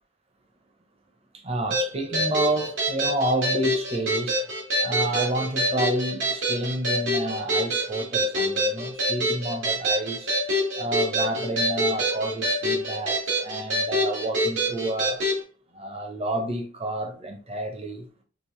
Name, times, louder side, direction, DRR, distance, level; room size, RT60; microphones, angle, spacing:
voice 1, 1.3-4.4 4.8-10.3 10.8-15.2 15.7-18.2, right 1 dB, 30° right, 0.8 m, -29 dB
sound 1, 1.7-15.4, equal, 90° right, 1.8 m, -26 dB
5.0 x 3.0 x 3.1 m
head